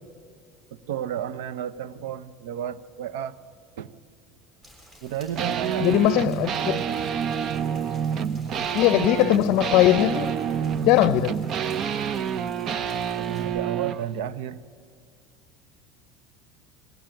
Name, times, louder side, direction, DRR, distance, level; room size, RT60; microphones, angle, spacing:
voice 1, 0.7-3.4 3.8-3.9 5.0-6.3 6.7-6.9 13.2-14.6, right 10 dB, 90° right, 0.7 m, -32 dB
Rain, 4.6-13.4, equal, 25° right, 6.4 m, -51 dB
sound 1, 5.4-14.0, right 8 dB, 45° right, 0.6 m, -28 dB
voice 2, 5.8-6.8 8.7-10.3 10.8-11.4, left 14 dB, 60° left, 0.6 m, -20 dB
21.0 x 16.5 x 9.0 m
supercardioid pair, 120°, 0 cm